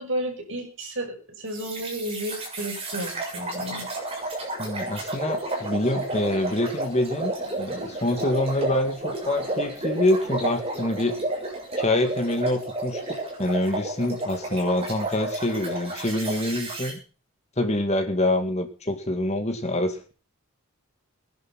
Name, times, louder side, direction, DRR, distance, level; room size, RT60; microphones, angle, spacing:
voice 1, 0.0-3.9, right 1 dB, 55° right, 2 dB, 5.9 m, -32 dB
sound 1, 1.5-16.9, right 2 dB, 25° right, 7.4 m, -32 dB
voice 2, 4.6-11.2 11.8-13.0 13.4-17.0 17.6-20.1, left 1 dB, 30° left, 6 dB, 2.1 m, -26 dB
20.0 x 11.0 x 5.8 m, 0.39 s
head